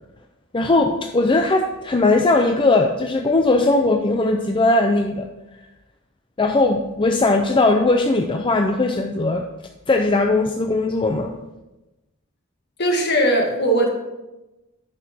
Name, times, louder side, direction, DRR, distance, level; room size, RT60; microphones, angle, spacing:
voice 1, 0.5-5.3 6.4-9.4 9.9-11.3, left 2 dB, 25° left, 3 dB, 0.5 m, -19 dB
voice 2, 12.8-13.9, right 1 dB, 50° left, 1 dB, 1.8 m, -19 dB
9.5 x 6.5 x 4.3 m, 1.0 s
head